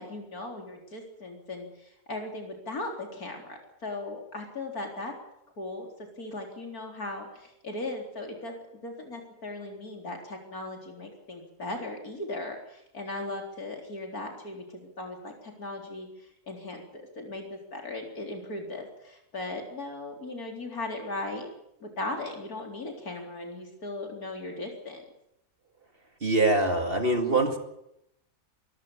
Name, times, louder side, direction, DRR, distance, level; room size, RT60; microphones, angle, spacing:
voice 1, 0.0-5.1 5.6-5.9 6.2-8.5 8.8-21.5 21.8-25.0, left 2 dB, 70° left, 2 dB, 4.5 m, -38 dB
voice 2, 26.2-27.6, right 2 dB, 35° right, 5 dB, 2.4 m, -24 dB
23.0 x 14.5 x 8.8 m, 0.81 s
omnidirectional pair, 1.6 m